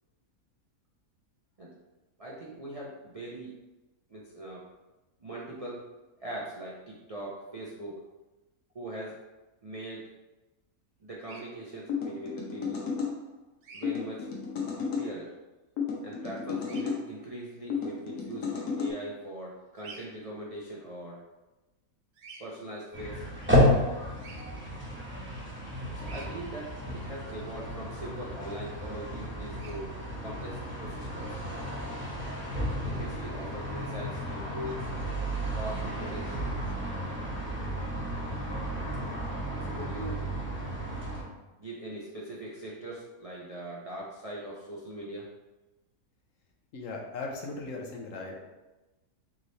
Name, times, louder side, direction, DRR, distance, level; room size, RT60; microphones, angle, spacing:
voice 1, 2.2-3.5 4.1-4.7 5.2-5.9 6.2-8.1 8.7-9.2 9.6-10.1 11.0-12.9 13.7-14.3 14.9-15.3 16.0-21.2 22.4-23.3 25.9-29.9 30.2-31.4 32.8-34.9 35.6-36.5 39.6-40.3 41.6-45.3, right 1 dB, 55° right, -4 dB, 0.4 m, -41 dB
Bird vocalization bird call bird song, 11.2-11.4 13.6-13.9 16.6-16.8 19.8-20.1 22.1-22.4 24.2-24.4 26.0-26.3 29.5-29.8, right 4 dB, 85° right, 1.3 m, -47 dB
sound 1, 11.9-13.1 13.8-15.1 15.8-17.0 17.7-18.9, left 6 dB, 85° left, 1.4 m, -33 dB
sound 2, 22.9-41.2, equal, 10° right, 1.0 m, -32 dB
voice 2, 46.7-48.4, left 3 dB, 65° left, 1 dB, 1.0 m, -38 dB
3.7 x 3.2 x 4.0 m, 1.1 s
omnidirectional pair, 1.6 m